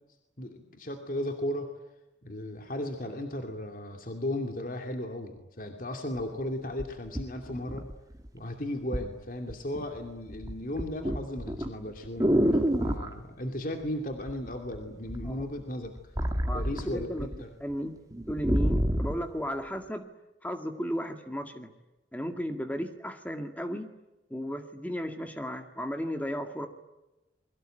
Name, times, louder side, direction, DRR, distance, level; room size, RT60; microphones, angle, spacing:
voice 1, 0.4-1.7 2.2-7.9 8.3-15.9 16.5-17.5, left 1 dB, 45° left, 4 dB, 2.7 m, -36 dB
sound 1, 6.2-6.3 6.8-8.3 8.9-9.1 9.5-10.0 10.3-13.1 14.3-14.8 15.1-17.4 17.7-17.8 18.1-19.2 19.9-20.0, equal, 20° right, 2.1 m, -28 dB
voice 2, 16.4-17.3 17.6-17.9 18.3-20.1 20.4-21.7 22.1-23.9 24.3-26.7, equal, 10° left, 6 dB, 1.9 m, -34 dB
28.5 x 23.0 x 9.1 m, 0.99 s
head